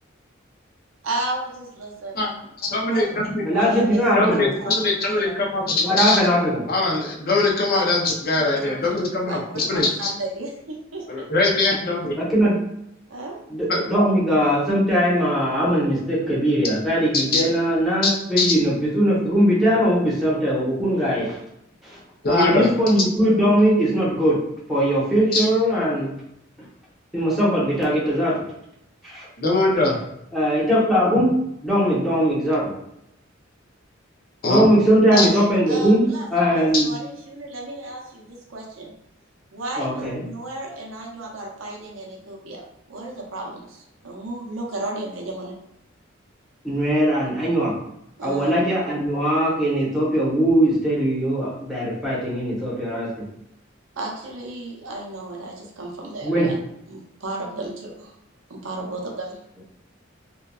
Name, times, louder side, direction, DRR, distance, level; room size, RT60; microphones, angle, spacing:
voice 1, 1.0-2.4 2.7-5.4 7.7-7.8 8.3-11.3 13.1-13.4 35.1-38.9 39.5-45.5 48.2-48.5 54.0-56.6 56.9-58.1 58.5-59.4, right 2 dB, 85° right, 0 dB, 0.6 m, -34 dB
voice 2, 2.7-3.4 4.1-6.2 6.7-9.9 11.1-12.1 13.7-13.8 17.1-17.4 18.0-18.5 22.2-22.7 23.0-23.1 25.3-25.4 29.4-30.0 31.1-31.2 34.4-34.7 35.2-35.3 36.7-36.8, left 2 dB, 50° left, -2 dB, 0.6 m, -22 dB
voice 3, 3.4-4.5 5.8-6.6 12.2-12.6 13.5-21.4 21.8-22.0 22.3-24.4 24.7-26.1 27.1-28.4 29.0-29.3 30.3-31.3 31.6-32.7 34.5-36.0 36.3-36.9 39.8-40.2 46.6-47.7 48.2-53.1 56.2-56.5, equal, ahead, -7 dB, 0.9 m, -20 dB
2.7 x 2.2 x 2.3 m, 0.79 s
head